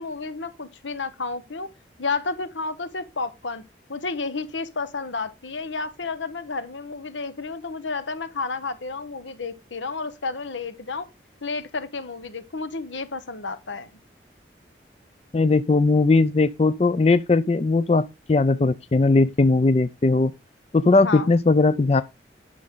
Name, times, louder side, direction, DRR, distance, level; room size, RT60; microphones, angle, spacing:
voice 1, 0.0-1.7 2.0-3.6 3.9-11.1 11.4-13.9 21.0-21.3, left 4 dB, 85° left, 1.1 m, -31 dB
voice 2, 15.3-20.3 20.7-22.0, left 3 dB, 35° left, 0.4 m, -19 dB
11.0 x 6.2 x 3.8 m
head